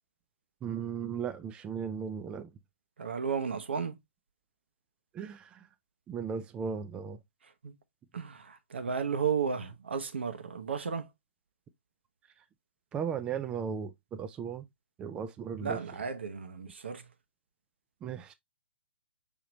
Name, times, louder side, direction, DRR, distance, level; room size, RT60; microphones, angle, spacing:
voice 1, 0.6-2.5 5.1-5.7 6.1-7.2 12.9-14.7 15.0-15.8 18.0-18.3, right 7 dB, 15° right, 0.4 m, -36 dB
voice 2, 3.0-4.0 7.6-7.8 8.1-11.1 15.6-17.1, right 6 dB, 60° right, 0.8 m, -33 dB
5.1 x 2.9 x 3.0 m
figure-of-eight pair, 125°, 7 cm